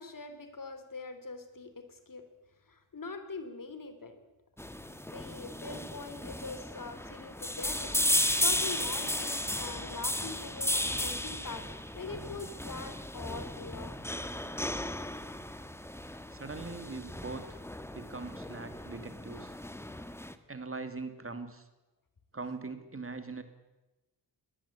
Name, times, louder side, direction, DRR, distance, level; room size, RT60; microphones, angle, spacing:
voice 1, 0.0-2.2 2.7-4.2 5.0-7.9 8.4-14.0, left 3 dB, 50° left, 9 dB, 3.2 m, -43 dB
sound 1, 4.6-20.3, left 1 dB, 5° left, 1.4 m, -35 dB
voice 2, 16.3-17.6 17.9-19.5 20.5-21.7 22.3-23.4, right 3 dB, 30° right, 9 dB, 2.5 m, -41 dB
21.5 x 19.0 x 8.5 m, 1.0 s
wide cardioid pair, 95°, 42 cm